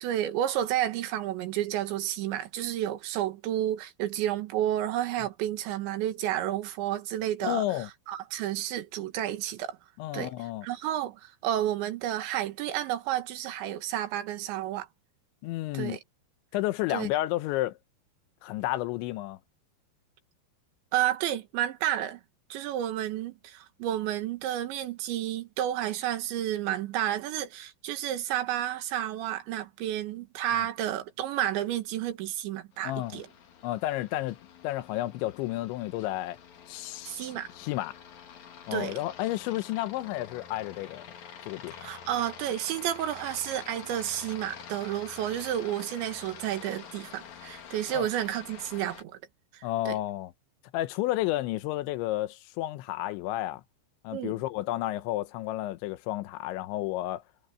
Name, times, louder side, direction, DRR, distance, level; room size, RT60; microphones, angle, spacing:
voice 1, 0.0-7.6 8.1-9.8 10.1-10.3 10.6-14.9 15.7-16.0 16.9-17.1 20.9-22.2 22.5-33.3 37.1-37.5 38.7-39.0 41.8-49.2 49.5-50.0 54.1-54.4, right 12 dB, 75° right, 3.7 m, -31 dB
voice 2, 7.4-7.9 10.0-10.7 15.4-16.0 16.5-17.8 18.4-19.4 32.8-33.2 33.6-34.4 34.6-36.4 36.7-37.9 38.7-41.1 41.4-41.8 47.9-48.1 49.6-50.3 50.7-53.6 54.0-57.2, left 15 dB, 85° left, 3.2 m, -31 dB
Aircraft, 32.7-49.0, left 8 dB, 50° left, 2.6 m, -47 dB
omnidirectional pair, 5.3 m